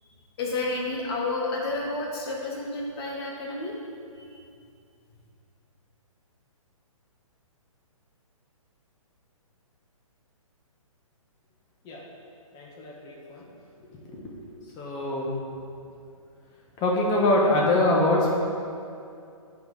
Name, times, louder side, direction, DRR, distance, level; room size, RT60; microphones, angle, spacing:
voice 1, 0.4-3.7 4.2-4.3, left 2 dB, 45° left, -2 dB, 1.9 m, -30 dB
voice 2, 12.5-13.4 14.1-14.3 14.8-15.3 16.8-18.3, left 1 dB, 20° left, -2 dB, 1.5 m, -24 dB
8.9 x 6.0 x 5.1 m, 2.5 s
figure-of-eight pair, 130°, 18 cm